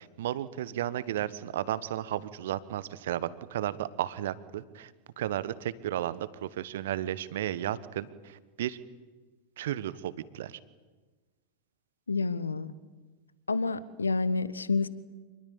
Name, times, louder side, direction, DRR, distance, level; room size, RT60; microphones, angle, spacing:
voice 1, 0.0-4.9 5.2-8.8 9.6-10.6, right 12 dB, 55° right, 16 dB, 1.3 m, -34 dB
voice 2, 12.1-12.7 13.5-14.9, left 4 dB, 75° left, 18 dB, 1.1 m, -29 dB
27.5 x 20.5 x 8.8 m, 1.3 s
figure-of-eight pair, 90°, 0 cm